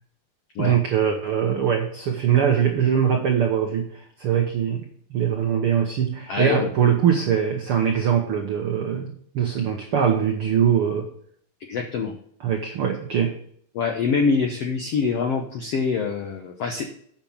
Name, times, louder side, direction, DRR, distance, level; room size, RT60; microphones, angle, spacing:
voice 1, 0.6-11.1 12.4-13.4, right 8 dB, 75° right, 3 dB, 1.2 m, -22 dB
voice 2, 6.3-6.7 11.7-12.1 13.7-16.9, left 5 dB, 75° left, 4 dB, 1.4 m, -24 dB
8.5 x 6.1 x 7.1 m, 0.64 s
omnidirectional pair, 4.2 m